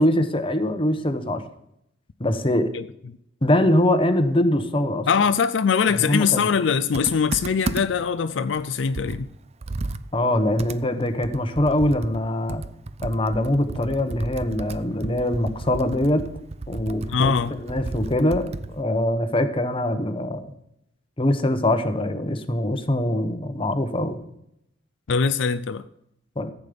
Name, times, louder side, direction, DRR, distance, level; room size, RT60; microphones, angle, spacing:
voice 1, 0.0-1.4 2.2-2.7 3.4-5.1 6.0-6.5 10.1-12.7 13.0-16.3 16.7-20.4 21.2-24.2 26.4-26.5, left 1 dB, 30° left, 1.1 m, -23 dB
voice 2, 5.1-9.3 17.1-17.5 25.1-25.9, left 6 dB, 70° left, 0.5 m, -22 dB
Computer keyboard, 6.9-8.1 8.5-8.6 8.9-18.8, right 2 dB, 35° right, 0.5 m, -33 dB
14.5 x 8.5 x 5.2 m
head